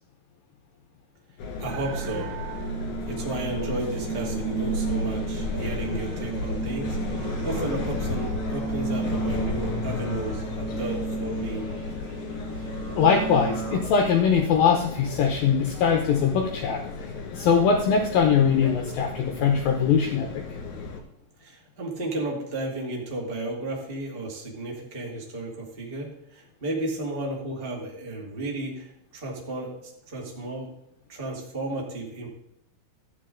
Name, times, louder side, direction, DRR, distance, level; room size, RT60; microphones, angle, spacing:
sound 1, 1.4-21.0, left 3 dB, 55° left, 2.4 m, -34 dB
voice 1, 1.6-2.3 3.1-11.7 21.4-30.7 31.1-32.3, right 2 dB, 50° right, -2 dB, 0.6 m, -33 dB
sound 2, 1.7-8.3, right 15 dB, 85° right, 2.4 m, -39 dB
sound 3, 3.8-13.8, right 3 dB, 30° right, 2.3 m, -33 dB
voice 2, 13.0-20.4, left 6 dB, 85° left, 3 dB, 2.0 m, -22 dB
14.0 x 9.5 x 3.8 m, 0.81 s
omnidirectional pair, 5.5 m